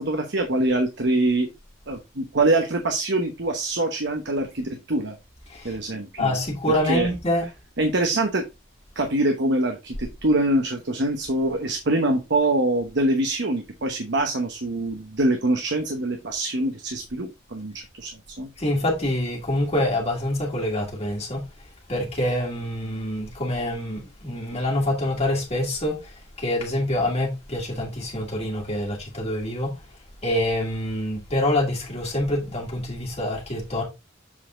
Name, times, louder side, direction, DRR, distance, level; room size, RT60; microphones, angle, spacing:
voice 1, 0.0-1.5 1.9-5.1 5.6-6.4 6.8-7.1 7.8-8.4 9.0-18.1 18.4-18.5, right 2 dB, 60° right, 1.0 m, -24 dB
voice 2, 6.2-7.4 18.6-21.4 21.9-29.7 30.2-33.8, left 1 dB, 30° left, 2.3 m, -26 dB
7.5 x 4.1 x 3.7 m
head